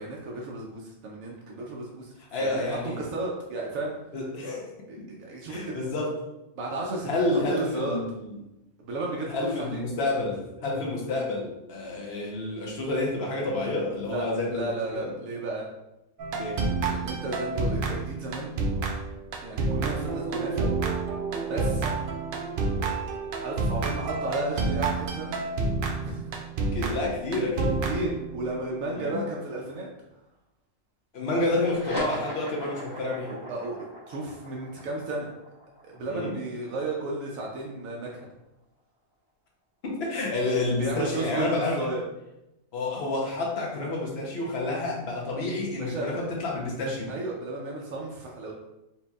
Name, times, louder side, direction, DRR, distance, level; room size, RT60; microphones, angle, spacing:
voice 1, 0.0-2.1 2.4-4.0 4.9-5.9 6.5-8.0 8.8-9.8 14.0-14.2 14.5-15.7 16.8-18.6 19.4-20.7 21.5-21.9 23.4-25.4 26.0-26.3 27.8-29.9 33.2-35.3 35.8-38.1 40.8-42.0 45.8-46.3 47.1-48.5, right 2 dB, 80° right, -2 dB, 1.0 m, -34 dB
voice 2, 2.3-3.0 4.1-4.7 5.0-5.1 5.5-6.2 7.1-8.3 9.3-14.7 14.9-15.1 16.3-16.7 26.7-27.8 29.0-29.2 31.1-33.3 36.1-36.3 39.8-41.9 42.7-47.1, left 2 dB, 55° left, -2 dB, 1.0 m, -29 dB
sound 1, 16.2-28.5, right 3 dB, 65° right, 0.5 m, -29 dB
sound 2, 31.6-38.5, equal, 35° left, 1.4 m, -40 dB
4.3 x 2.9 x 2.3 m, 0.93 s
omnidirectional pair, 1.4 m